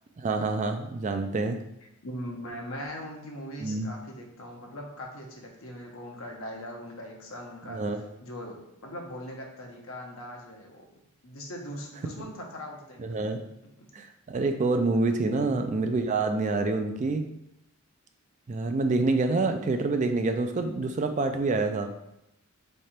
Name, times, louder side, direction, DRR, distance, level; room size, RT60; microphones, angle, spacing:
voice 1, 0.2-1.6 3.6-3.9 7.7-8.0 13.0-13.4 13.9-17.2 18.5-21.9, right 3 dB, 35° right, 6 dB, 0.3 m, -27 dB
voice 2, 2.0-7.8 8.2-10.8 11.2-13.2 13.8-13.9 15.2-15.6, equal, 65° left, 0 dB, 0.9 m, -40 dB
3.7 x 3.3 x 4.3 m, 0.85 s
head